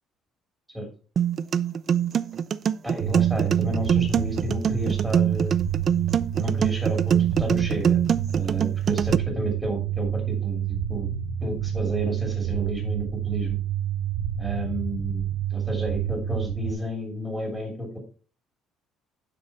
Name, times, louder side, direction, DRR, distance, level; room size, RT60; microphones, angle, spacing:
sound 1, 1.2-9.2, right 8 dB, 35° right, 0.4 m, -24 dB
voice 1, 2.8-5.6 6.3-8.0 8.3-11.1 11.4-13.6 14.4-15.2 15.5-18.0, equal, ahead, 0 dB, 2.8 m, -31 dB
sound 2, 3.0-16.7, right 10 dB, 80° right, 1.1 m, -28 dB
10.5 x 6.1 x 4.2 m, 0.39 s
cardioid pair, 150°, 0 cm